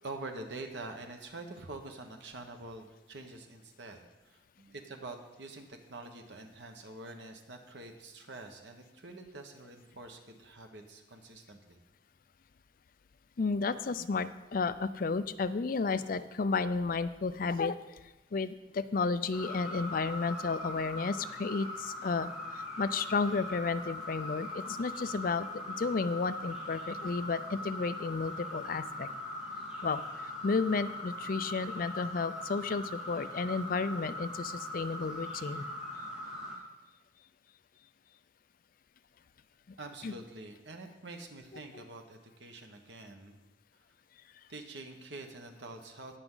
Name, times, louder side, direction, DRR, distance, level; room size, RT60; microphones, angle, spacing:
voice 1, 0.0-11.8 39.8-43.4 44.5-46.2, right 2 dB, 85° right, 4 dB, 1.3 m, -46 dB
voice 2, 13.4-17.8 18.3-29.1 29.8-30.0 30.4-35.6 40.0-40.1 41.7-41.8, left 4 dB, 50° left, 13 dB, 0.4 m, -32 dB
sound 1, 19.3-36.6, left 1 dB, 5° right, 1.9 m, -41 dB
18.0 x 6.0 x 3.9 m, 1.0 s
head